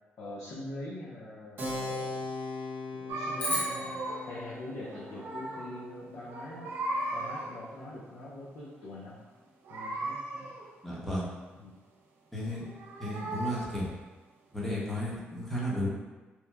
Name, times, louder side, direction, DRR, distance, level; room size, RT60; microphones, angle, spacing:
voice 1, 0.2-2.3 2.9-6.7 7.1-9.2 9.7-10.6 11.6-11.7, left 1 dB, 75° left, -7 dB, 0.5 m, -43 dB
Keyboard (musical), 1.6-7.7, left 2 dB, 55° right, 0.7 m, -40 dB
sound 1, 3.1-4.4 4.8-5.8 6.1-7.7 9.6-10.8 12.4-13.9, right 2 dB, 80° right, 0.3 m, -37 dB
sound 2, 3.4-5.8, left 1 dB, 40° left, 0.7 m, -37 dB
voice 2, 10.8-11.3 12.3-12.7 13.0-13.9 14.5-15.9, left 1 dB, 5° left, -6 dB, 0.7 m, -33 dB
2.9 x 2.1 x 2.2 m, 1.2 s
cardioid pair, 100°, 4 cm